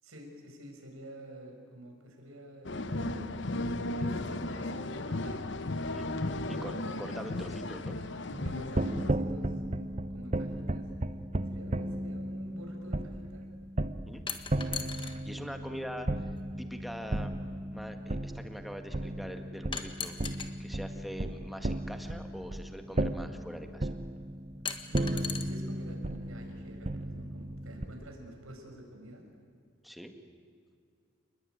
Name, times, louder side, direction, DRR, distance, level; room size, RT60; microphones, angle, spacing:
voice 1, 0.0-5.4 6.4-6.8 8.5-9.6 10.1-10.9 11.5-13.4 15.5-15.9 24.9-29.2, equal, 85° right, 2 dB, 6.1 m, -48 dB
sound 1, 2.6-9.1, left 2 dB, 55° left, 1.0 m, -35 dB
voice 2, 6.5-8.0 11.7-12.1 14.1-14.2 15.2-16.1 16.6-17.3 17.7-20.1 20.6-23.9 29.8-30.1, equal, ahead, 5 dB, 1.8 m, -43 dB
sound 2, 8.3-27.9, right 1 dB, 35° right, 0.9 m, -35 dB
sound 3, 14.3-15.2 16.4-16.5 19.7-20.5 22.0-22.1 24.7-25.4, left 6 dB, 25° left, 1.5 m, -37 dB
29.0 x 21.0 x 9.4 m, 2.2 s
head